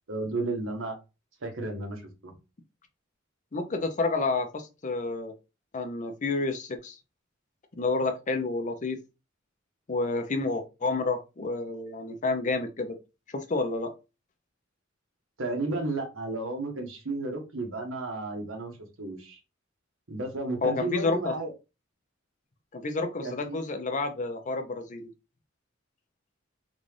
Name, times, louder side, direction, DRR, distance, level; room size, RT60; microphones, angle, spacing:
voice 1, 0.1-1.0 1.4-2.4 15.4-19.4 20.1-21.5 23.2-23.6, right 2 dB, 80° right, 1.1 m, -33 dB
voice 2, 3.5-5.3 5.7-7.0 7.8-9.0 9.9-13.0 13.3-13.9 20.6-21.3 22.7-25.1, left 3 dB, 40° left, 0.6 m, -29 dB
3.9 x 2.4 x 3.2 m
head